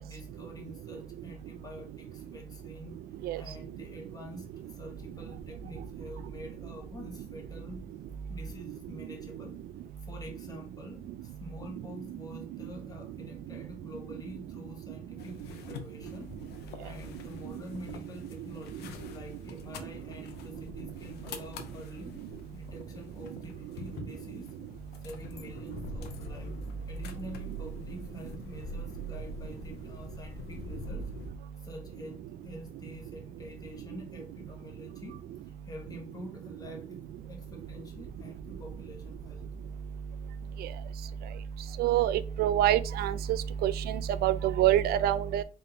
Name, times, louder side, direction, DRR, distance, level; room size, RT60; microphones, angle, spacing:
voice 1, 0.0-3.0 3.3-7.9 8.3-9.6 10.1-16.4 16.8-22.2 22.5-24.5 25.0-26.6 26.9-31.1 31.6-35.2 35.6-39.4, left 1 dB, 20° left, 1.1 m, -47 dB
sound 1, 15.2-31.3, left 1 dB, 80° left, 0.7 m, -44 dB
voice 2, 41.8-45.4, right 11 dB, 70° right, 0.4 m, -26 dB
3.8 x 3.6 x 2.8 m
cardioid pair, 110°, 17 cm